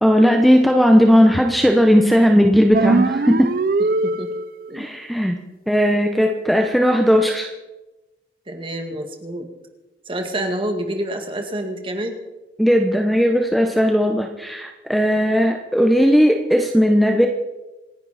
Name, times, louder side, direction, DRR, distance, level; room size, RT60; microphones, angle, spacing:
voice 1, 0.0-3.5 4.7-5.4 5.7-7.5 12.6-17.3, equal, ahead, 3 dB, 0.9 m, -16 dB
sound 1, 2.7-4.7, right 3 dB, 55° right, 0.5 m, -21 dB
voice 2, 4.0-4.3 4.7-4.9 8.5-9.5 10.1-12.2, right 1 dB, 30° right, 4 dB, 2.0 m, -27 dB
27.0 x 10.5 x 4.3 m, 1.1 s
head